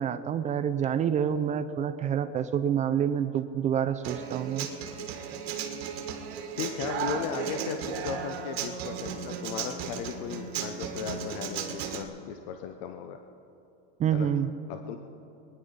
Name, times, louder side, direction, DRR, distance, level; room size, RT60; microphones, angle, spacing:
voice 1, 0.0-4.7 14.0-14.5, right 8 dB, 25° right, 11 dB, 0.5 m, -27 dB
Human voice / Acoustic guitar, 4.0-12.0, right 7 dB, 75° right, 1.8 m, -35 dB
voice 2, 6.6-13.2 14.1-14.3 14.7-15.0, left 8 dB, 60° left, 6 dB, 0.9 m, -36 dB
23.0 x 10.0 x 5.4 m, 2.9 s
supercardioid pair, 130°, 31 cm